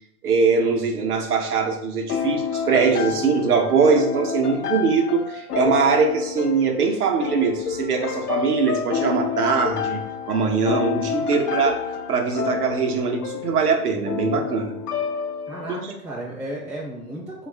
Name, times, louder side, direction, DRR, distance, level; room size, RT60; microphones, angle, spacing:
voice 1, 0.2-10.0 10.3-14.8 15.8-15.9, right 5 dB, 75° right, 3 dB, 0.7 m, -22 dB
sound 1, 2.1-15.8, left 7 dB, 85° left, 0.6 m, -29 dB
sound 2, 5.7-6.8 7.7-8.8 9.6-10.8 11.6-12.8, left 6 dB, 40° left, 0.6 m, -36 dB
voice 2, 15.5-17.5, right 1 dB, 5° right, -8 dB, 0.5 m, -34 dB
3.3 x 2.4 x 3.2 m, 0.75 s
hypercardioid pair, 125°, 45 cm